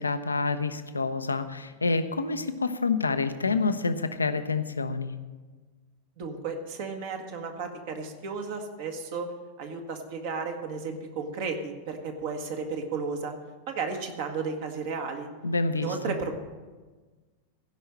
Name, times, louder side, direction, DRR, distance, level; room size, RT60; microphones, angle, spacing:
voice 1, 0.0-5.1 15.4-16.1, left 3 dB, 80° left, 11 dB, 0.7 m, -28 dB
voice 2, 6.2-9.3 9.6-13.3 13.7-15.3 15.7-16.4, right 4 dB, 50° right, 4 dB, 1.6 m, -33 dB
16.0 x 5.6 x 7.5 m, 1.3 s
figure-of-eight pair, 90°, 0 cm